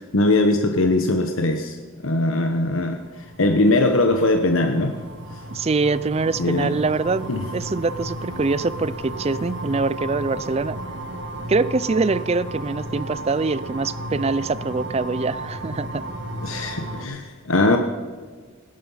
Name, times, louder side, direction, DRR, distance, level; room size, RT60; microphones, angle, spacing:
voice 1, 0.0-1.8 2.0-5.0 6.4-6.7 7.3-7.4 16.4-17.8, left 2 dB, 70° left, 5 dB, 1.1 m, -20 dB
sound 1, 2.7-17.0, right 1 dB, 55° right, 2.0 m, -34 dB
voice 2, 5.5-10.8 11.5-16.0, right 3 dB, 30° right, 18 dB, 0.4 m, -24 dB
18.5 x 10.5 x 5.6 m, 1.5 s
head